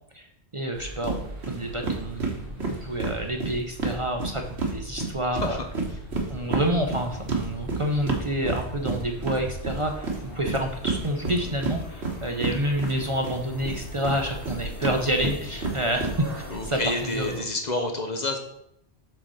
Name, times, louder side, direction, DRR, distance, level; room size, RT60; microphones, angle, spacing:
voice 1, 0.5-5.6 6.3-17.4, right 1 dB, 35° right, 3 dB, 0.7 m, -28 dB
sound 1, 0.7-16.9, equal, 60° right, 2.2 m, -41 dB
sound 2, 1.0-1.2 1.4-1.6 1.8-4.7 5.0-13.4 13.7-16.1, right 4 dB, 80° right, 1.6 m, -29 dB
sound 3, 6.4-17.4, left 3 dB, 80° left, 1.3 m, -46 dB
voice 2, 16.5-18.4, left 2 dB, 45° left, 5 dB, 0.9 m, -29 dB
7.6 x 4.0 x 6.3 m, 0.77 s
omnidirectional pair, 1.1 m